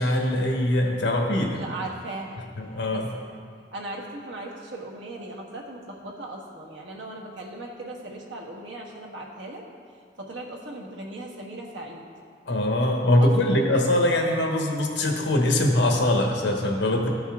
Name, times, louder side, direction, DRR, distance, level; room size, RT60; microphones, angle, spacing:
voice 1, 0.0-1.6 2.6-3.1 12.5-17.1, left 1 dB, 75° left, 1 dB, 1.3 m, -22 dB
voice 2, 1.5-2.4 2.9-3.3 3.7-9.6 10.2-12.1 13.2-13.7, right 2 dB, 85° right, -2 dB, 1.4 m, -38 dB
13.5 x 5.5 x 3.6 m, 2.1 s
head